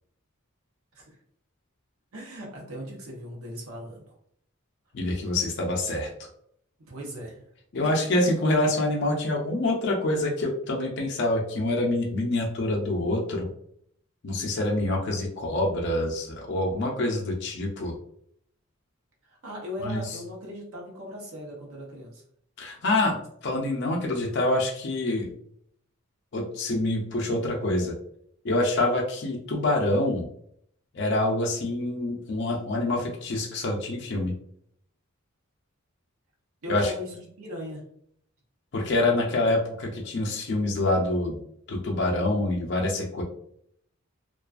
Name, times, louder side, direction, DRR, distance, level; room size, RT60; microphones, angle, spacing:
voice 1, 2.1-4.1 6.8-7.4 7.8-8.3 19.2-22.2 36.6-37.9, left 1 dB, 85° right, -1 dB, 0.7 m, -39 dB
voice 2, 4.9-6.3 7.7-13.5 14.2-17.9 19.8-20.0 22.6-25.3 26.3-27.9 28.4-30.3 30.9-34.3 36.7-36.9 38.7-41.4 41.7-43.2, left 2 dB, 55° left, -1 dB, 0.4 m, -26 dB
2.4 x 2.3 x 2.3 m, 0.68 s
head